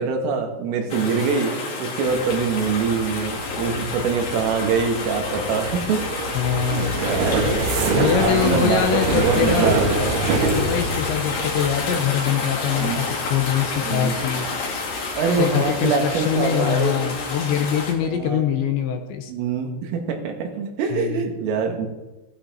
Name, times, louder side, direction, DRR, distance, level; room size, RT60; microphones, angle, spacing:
voice 1, 0.0-1.5 1.8-6.1 6.7-10.2 12.8-13.0 13.8-14.1 15.1-17.2 18.0-18.4 19.3-21.9, right 5 dB, 80° right, 3 dB, 4.4 m, -24 dB
sound 1, 0.9-17.9, left 4 dB, 60° left, 4.7 m, -29 dB
sound 2, 2.1-16.7 17.0-17.5 17.7-18.1, right 3 dB, 65° right, 4.4 m, -27 dB
voice 2, 6.3-7.0 7.9-9.8 10.5-14.5 15.4-19.3 20.9-21.3, left 9 dB, 75° left, 6 dB, 3.0 m, -23 dB
15.5 x 12.0 x 4.5 m, 1.1 s
omnidirectional pair, 5.8 m